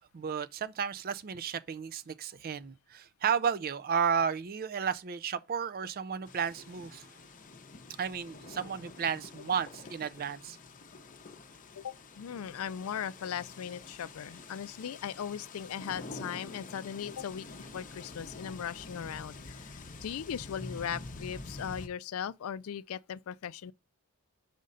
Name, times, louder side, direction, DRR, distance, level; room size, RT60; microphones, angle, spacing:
voice 1, 0.1-7.1 8.0-10.6, right 7 dB, 40° right, 0.4 m, -33 dB
sound 1, 6.3-21.9, left 3 dB, 35° left, 0.7 m, -47 dB
voice 2, 11.7-23.7, left 8 dB, 70° left, 0.4 m, -38 dB
5.1 x 3.8 x 5.4 m
head